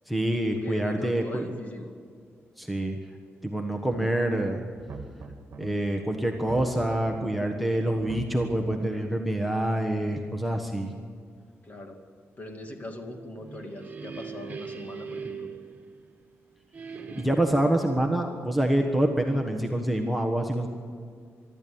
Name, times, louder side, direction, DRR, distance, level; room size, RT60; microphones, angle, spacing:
voice 1, 0.1-1.5 2.6-2.9 3.4-4.6 5.6-10.9 17.2-20.7, right 1 dB, ahead, 3 dB, 1.3 m, -26 dB
voice 2, 0.6-1.9 11.6-12.0 12.4-15.5, left 1 dB, 35° left, 4 dB, 2.3 m, -40 dB
sound 1, 3.9-4.4 4.7-5.7 6.3-7.3 7.9-8.9, right 4 dB, 50° right, 1.7 m, -41 dB
sound 2, 13.2-16.3 16.7-17.7, right 5 dB, 30° right, 2.2 m, -40 dB
24.0 x 12.5 x 8.7 m, 2.1 s
wide cardioid pair, 145°, 5 cm